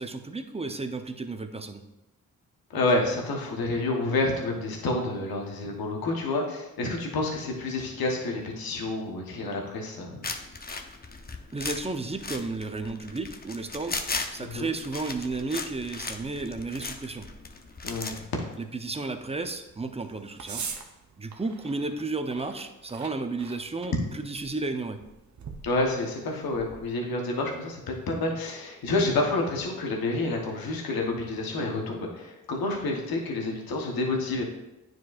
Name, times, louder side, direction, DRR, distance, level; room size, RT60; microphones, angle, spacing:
voice 1, 0.0-1.8 10.7-10.9 11.5-14.0 14.3-17.3 18.6-20.7 21.2-25.0, right 3 dB, 15° right, 7 dB, 0.7 m, -33 dB
voice 2, 2.7-10.2 14.4-14.7 17.8-18.2 25.6-27.8 28.1-34.4, left 2 dB, 80° left, 1 dB, 1.2 m, -29 dB
sound 1, 10.2-18.3, left 3 dB, 25° left, 0.7 m, -37 dB
sound 2, 16.0-26.9, right 5 dB, 55° right, 0.8 m, -46 dB
9.3 x 4.6 x 2.5 m, 0.98 s
supercardioid pair, 40°, 35 cm